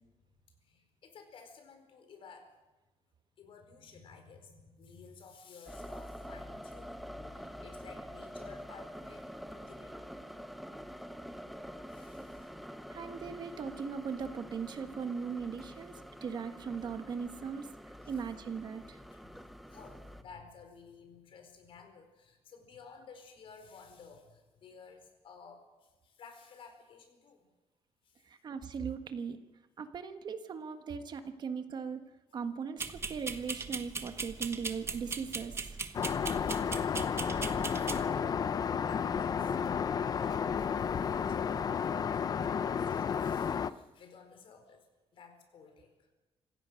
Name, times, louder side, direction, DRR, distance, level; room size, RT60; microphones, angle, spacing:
voice 1, 0.6-2.5 3.4-10.1 11.9-12.6 18.0-18.1 19.1-27.4 28.0-28.2 36.4-37.3 37.7-38.5 38.9-39.5 39.9-44.9 45.1-46.1, left 5 dB, 55° left, 6 dB, 4.6 m, -54 dB
sound 1, 5.7-20.2, equal, ahead, 1.0 m, -47 dB
voice 2, 12.9-15.9 16.2-17.7 18.1-19.0 28.3-29.4 29.8-35.8, right 6 dB, 45° right, 8 dB, 1.4 m, -39 dB
sound 2, 32.8-38.0, right 4 dB, 25° right, 1.2 m, -39 dB
Aircraft, 35.9-43.7, left 7 dB, 35° left, 0.7 m, -32 dB
26.0 x 16.0 x 6.4 m, 1.1 s
cardioid pair, 170°, 11 cm